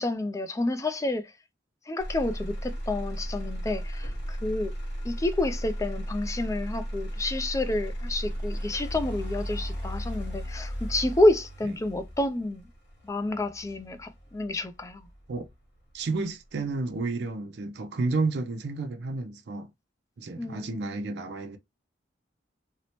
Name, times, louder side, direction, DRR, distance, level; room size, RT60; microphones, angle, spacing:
voice 1, 0.0-1.3 1.9-4.7 5.0-12.7 13.0-15.1 20.4-21.0, left 2 dB, 15° left, 0.3 m, -29 dB
Motor vehicle (road), 2.0-16.0 16.5-17.0, equal, 65° left, 1.1 m, -35 dB
voice 2, 15.9-19.7 20.2-21.6, right 3 dB, 65° right, 0.4 m, -31 dB
2.7 x 2.0 x 2.9 m
head